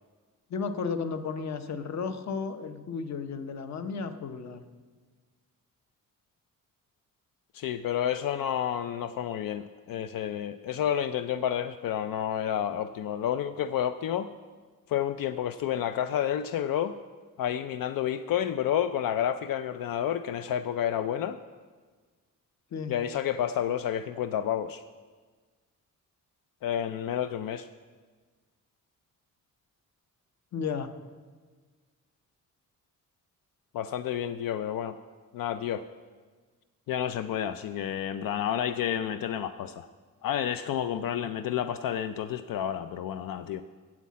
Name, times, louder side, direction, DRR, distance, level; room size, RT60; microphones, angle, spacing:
voice 1, 0.5-4.6 22.7-23.0 30.5-30.9 41.2-41.4, left 5 dB, 55° left, 9 dB, 0.8 m, -34 dB
voice 2, 7.5-14.3 14.9-17.0 17.4-21.4 22.9-24.8 26.6-27.7 33.7-35.0 35.3-35.9 36.9-39.9 40.2-43.6, left 10 dB, 85° left, 10 dB, 0.5 m, -30 dB
9.7 x 7.4 x 8.4 m, 1.5 s
wide cardioid pair, 165°, 33 cm